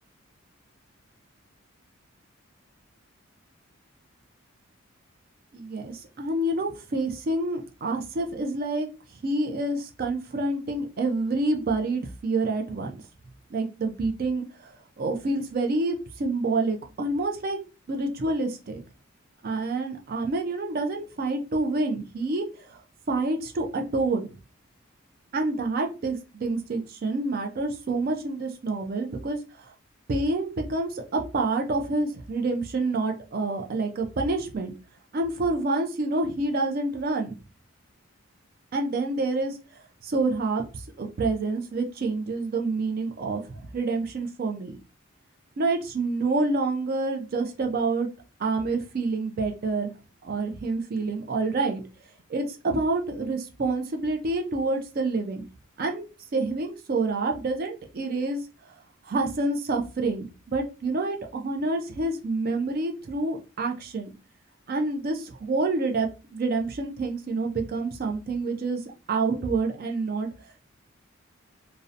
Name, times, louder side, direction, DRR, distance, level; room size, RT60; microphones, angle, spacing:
voice 1, 5.5-8.9 9.2-13.0 13.5-14.4 15.0-17.6 17.9-18.8 19.4-22.5 23.1-24.3 25.3-29.4 30.1-34.7 35.1-37.4 38.7-39.6 40.0-40.6 41.0-44.8 45.6-48.1 48.4-49.9 50.2-51.8 52.3-55.4 55.8-56.1 56.3-58.4 59.1-64.1 64.7-68.8 69.1-70.3, right 3 dB, 45° right, 4 dB, 0.4 m, -27 dB
2.6 x 2.0 x 2.4 m, 0.32 s
head